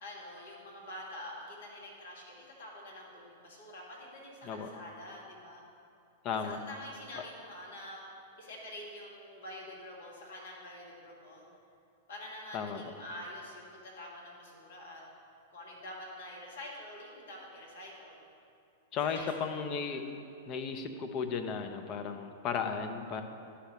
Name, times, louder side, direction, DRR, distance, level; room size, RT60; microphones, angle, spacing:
voice 1, 0.0-5.6 6.4-8.0 8.4-11.4 12.1-15.0 15.5-18.2 19.0-19.3 19.9-20.1, left 1 dB, 65° left, -3 dB, 1.8 m, -46 dB
voice 2, 6.2-6.6 12.5-12.8 18.9-20.1 20.5-23.2, left 6 dB, 35° left, 6 dB, 0.7 m, -35 dB
11.5 x 5.6 x 3.1 m, 2.6 s
figure-of-eight pair, 100°, 0 cm